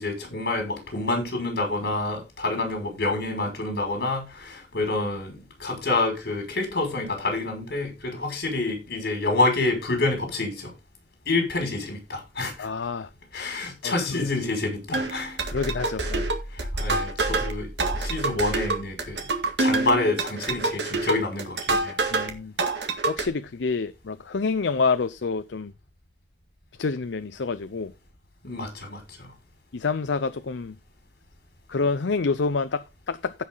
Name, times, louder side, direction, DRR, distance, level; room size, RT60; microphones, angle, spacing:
voice 1, 0.0-10.7 11.3-12.7 13.3-15.4 16.5-17.7 17.9-19.3 19.6-22.0 28.4-29.3, left 2 dB, 60° left, 5.8 m, -27 dB
voice 2, 12.6-13.6 13.8-14.3 15.5-16.3 22.1-22.5 23.1-25.7 26.8-27.9 29.7-30.8 31.7-33.3, left 4 dB, 80° left, 0.6 m, -28 dB
sound 1, 14.9-22.3 22.6-23.3, right 3 dB, 75° right, 2.0 m, -26 dB
16.0 x 5.8 x 3.9 m
head